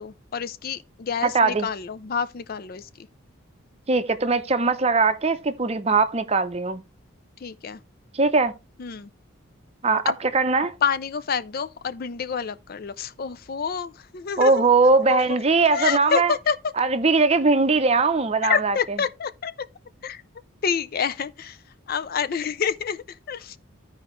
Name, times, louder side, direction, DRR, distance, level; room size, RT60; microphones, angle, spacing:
voice 1, 0.0-2.9 7.4-7.8 8.8-9.1 10.1-10.2 10.8-14.6 15.1-15.4 15.7-16.6 18.4-19.5 20.0-20.2 20.6-21.6 21.9-23.6, left 6 dB, 45° left, 0.4 m, -28 dB
voice 2, 1.2-1.7 3.9-6.8 8.1-8.5 9.8-10.7 14.4-16.3 16.8-18.8, right 3 dB, 30° right, 0.6 m, -20 dB
14.5 x 4.9 x 3.0 m
head